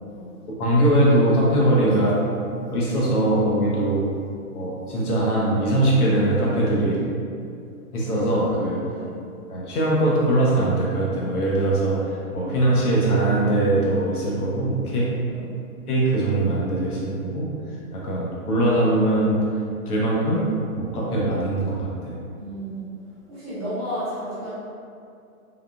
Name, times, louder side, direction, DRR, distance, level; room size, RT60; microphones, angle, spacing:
voice 1, 0.5-2.2 2.7-4.1 4.5-7.0 7.9-8.9 9.5-15.2 15.9-17.5 17.9-19.4 19.9-22.2, right 1 dB, 85° left, -4 dB, 0.9 m, -21 dB
voice 2, 22.4-22.8 23.3-24.5, equal, 25° right, -12 dB, 0.9 m, -32 dB
3.6 x 2.2 x 2.4 m, 2.4 s
hypercardioid pair, 175°, 44 cm